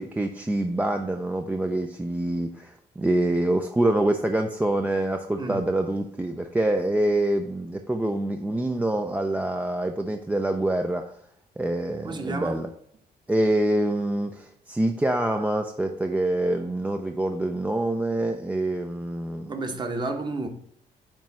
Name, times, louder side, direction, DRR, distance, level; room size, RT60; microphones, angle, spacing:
voice 1, 0.0-11.1 11.6-12.7 13.3-19.5, right 1 dB, 10° right, 0.4 m, -26 dB
voice 2, 5.4-5.7 12.0-12.6 19.5-20.5, right 3 dB, 25° right, 1.0 m, -31 dB
8.9 x 3.1 x 5.9 m
cardioid pair, 155°, 17 cm